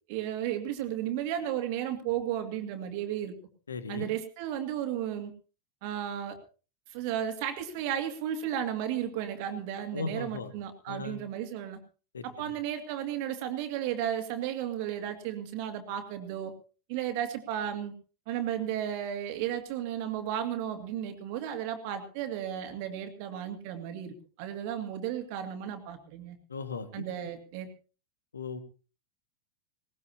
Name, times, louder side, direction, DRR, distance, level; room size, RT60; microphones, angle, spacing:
voice 1, 0.1-3.3 3.9-5.3 5.8-6.4 6.9-11.8 12.2-16.5 16.9-17.9 18.3-26.4 26.9-27.7, right 10 dB, 45° right, 6 dB, 2.3 m, -34 dB
voice 2, 3.7-4.1 9.9-10.5 10.9-11.2 12.1-12.5 26.5-27.1 28.3-28.6, left 4 dB, 70° left, 11 dB, 1.9 m, -37 dB
20.0 x 19.0 x 2.9 m, 0.36 s
figure-of-eight pair, 90°, 0 cm